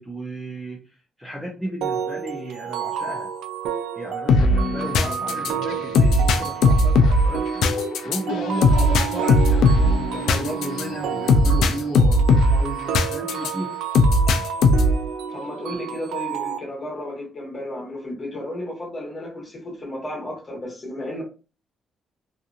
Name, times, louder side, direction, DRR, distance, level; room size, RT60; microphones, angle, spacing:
voice 1, 0.0-3.3 4.0-7.6 8.0-13.7, right 1 dB, 5° right, 0.5 m, -34 dB
sound 1, 1.8-16.6, right 7 dB, 80° right, 0.3 m, -31 dB
sound 2, 4.3-13.5 13.9-15.1, left 2 dB, 75° left, 0.4 m, -18 dB
voice 2, 15.3-21.2, left 1 dB, 25° left, 1.1 m, -33 dB
2.8 x 2.5 x 2.4 m
cardioid pair, 180°, 0 cm